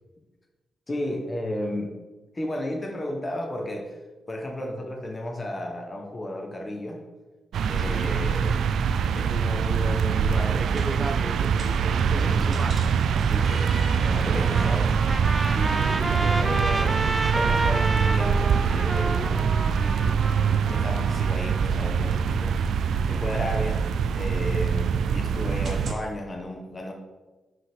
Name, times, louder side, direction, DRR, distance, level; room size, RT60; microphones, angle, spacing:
voice 1, 0.9-1.9 2.3-4.0 4.3-7.0 7.7-8.6 9.0-10.6 12.0-12.6 13.3-15.1 15.5-19.5 19.8-23.9 24.1-26.9, left 1 dB, 25° left, 1 dB, 1.2 m, -34 dB
sound 1, 7.5-25.9, right 6 dB, 80° right, 0.3 m, -24 dB
voice 2, 7.7-8.2 10.3-12.9, right 3 dB, 40° right, 8 dB, 0.9 m, -34 dB
sound 2, 8.8-26.0, right 2 dB, 60° right, 2.5 m, -46 dB
Trumpet, 14.3-21.7, right 2 dB, 15° right, 0.4 m, -31 dB
5.7 x 5.6 x 5.8 m, 1.2 s
cardioid pair, 85°, 0 cm